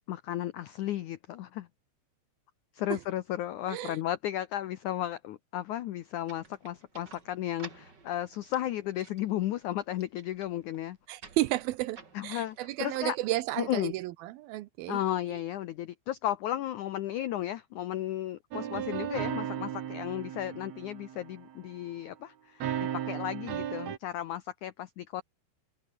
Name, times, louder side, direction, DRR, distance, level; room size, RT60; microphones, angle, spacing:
voice 1, 0.1-1.7 2.7-11.0 12.1-13.2 13.6-13.9 14.9-25.2, left 13 dB, 90° left, 1.7 m, -34 dB
sound 1, 6.3-14.1, right 4 dB, 25° right, 3.3 m, -54 dB
voice 2, 11.1-12.0 12.2-15.0, right 16 dB, 75° right, 2.4 m, -32 dB
sound 2, 18.5-21.7 22.6-24.0, right 10 dB, 55° right, 2.3 m, -35 dB
omnidirectional pair, 4.8 m